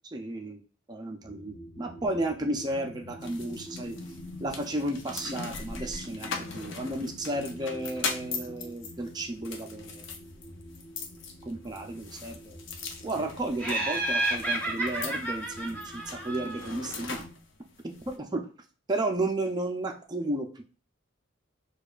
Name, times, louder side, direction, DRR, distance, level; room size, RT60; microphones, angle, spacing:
voice 1, 0.1-0.6 0.9-4.0 4.4-10.0 11.5-12.6 13.0-17.2 18.1-18.5 18.9-20.6, right 1 dB, 20° right, 3 dB, 0.4 m, -33 dB
sound 1, 1.2-17.3, equal, 35° left, 0.9 m, -47 dB
sound 2, 3.2-18.2, left 5 dB, 65° left, 0.6 m, -41 dB
Laughter, 13.6-16.9, right 2 dB, 10° left, 0.8 m, -31 dB
6.7 x 2.3 x 2.4 m, 0.38 s
head